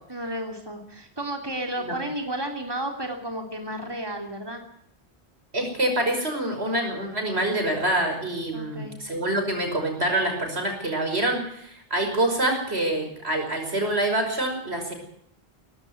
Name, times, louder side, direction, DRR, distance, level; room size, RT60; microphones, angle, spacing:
voice 1, 0.1-4.6 8.5-8.9, right 1 dB, 25° right, 3 dB, 3.0 m, -32 dB
voice 2, 5.5-14.9, right 1 dB, 85° right, 4 dB, 5.9 m, -26 dB
18.0 x 16.0 x 9.5 m, 0.71 s
omnidirectional pair, 1.1 m